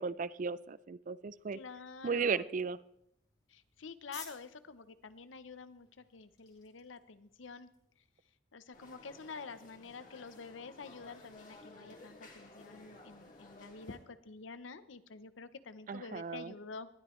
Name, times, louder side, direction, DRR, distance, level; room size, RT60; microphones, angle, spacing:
voice 1, 0.0-1.6 2.0-2.8 15.9-16.5, right 5 dB, 40° right, 18 dB, 0.4 m, -35 dB
sound 1, 1.3-8.3, left 5 dB, 25° left, 2.7 m, -58 dB
voice 2, 1.5-2.4 3.5-7.7 8.5-16.9, left 4 dB, 80° left, 13 dB, 0.8 m, -48 dB
sound 2, 8.7-14.0, left 2 dB, 45° left, 2.5 m, -55 dB
19.5 x 12.5 x 3.2 m, 0.77 s
head